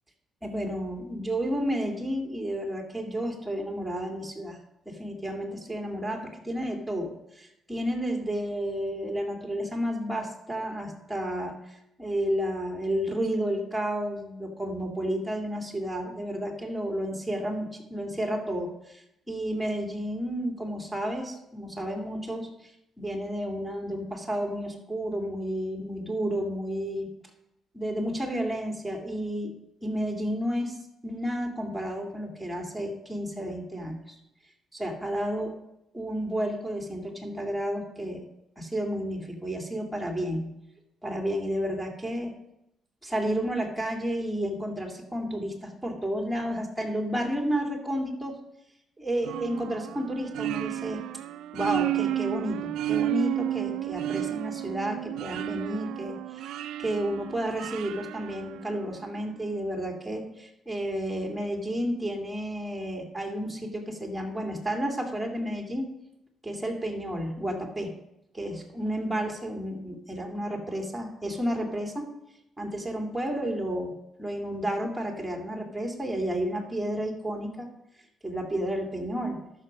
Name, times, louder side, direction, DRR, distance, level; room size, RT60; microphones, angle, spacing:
voice 1, 0.4-4.6 4.9-11.6 12.0-19.0 19.3-22.5 23.0-27.1 27.7-29.5 29.8-30.8 31.0-34.1 34.7-35.5 35.9-38.2 38.6-40.5 41.0-42.3 43.0-48.3 49.0-51.0 51.5-56.5 56.8-65.9 66.4-67.9 68.3-72.1 72.6-73.9 74.2-77.7 78.2-79.4, equal, 5° right, 1 dB, 2.4 m, -31 dB
sound 1, 49.3-59.1, right 13 dB, 85° right, 0.3 m, -32 dB
13.0 x 6.5 x 5.1 m, 0.84 s
cardioid pair, 90°, 0 cm